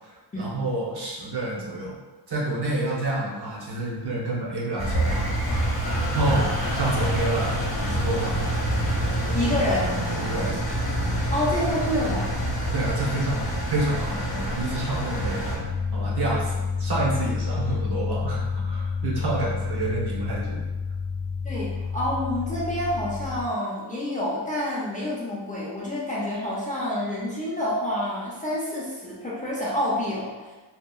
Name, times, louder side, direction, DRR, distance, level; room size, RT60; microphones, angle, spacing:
voice 1, 0.0-2.0 2.3-5.3 6.1-6.4 6.7-8.4 9.2-9.4 10.2-10.7 12.7-15.6 15.9-20.6, right 2 dB, 55° right, -5 dB, 0.8 m, -29 dB
Engine, 4.8-15.6, right 1 dB, 55° left, 0.8 m, -26 dB
voice 2, 6.3-6.6 9.3-9.9 11.3-12.3 21.4-30.5, left 1 dB, 20° left, -7 dB, 0.4 m, -28 dB
sound 1, 15.6-23.4, left 5 dB, 90° left, 0.6 m, -29 dB
2.8 x 2.3 x 2.3 m, 1.2 s
wide cardioid pair, 115°, 46 cm